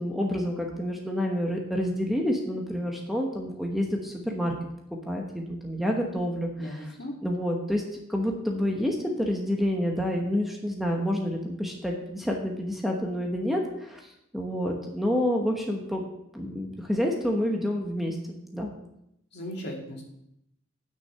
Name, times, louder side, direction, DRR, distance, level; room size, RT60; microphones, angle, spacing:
voice 1, 0.0-4.5 5.1-6.9 7.2-7.8 8.1-16.1 16.3-18.8, equal, ahead, 0 dB, 1.1 m, -28 dB
voice 2, 6.6-7.1 19.3-20.0, equal, 55° left, -1 dB, 2.3 m, -37 dB
9.5 x 6.5 x 5.7 m, 0.79 s
head